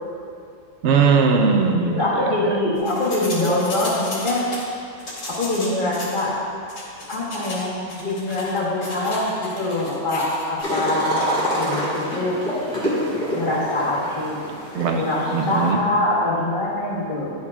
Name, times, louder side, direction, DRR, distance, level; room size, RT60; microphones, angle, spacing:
voice 1, 0.8-2.3 14.7-15.8, right 5 dB, 70° right, 4 dB, 0.9 m, -19 dB
voice 2, 2.0-4.4 5.4-6.3 7.1-12.3 13.3-14.4 15.0-17.3, left 1 dB, 40° left, -6 dB, 1.5 m, -24 dB
sound 1, 2.8-4.6 5.0-6.3 6.7-7.6 7.9-10.6, left 2 dB, 75° left, 1.8 m, -34 dB
sound 2, 10.6-15.7, equal, 5° left, 1.6 m, -27 dB
10.5 x 5.6 x 2.4 m, 2.4 s
omnidirectional pair, 1.3 m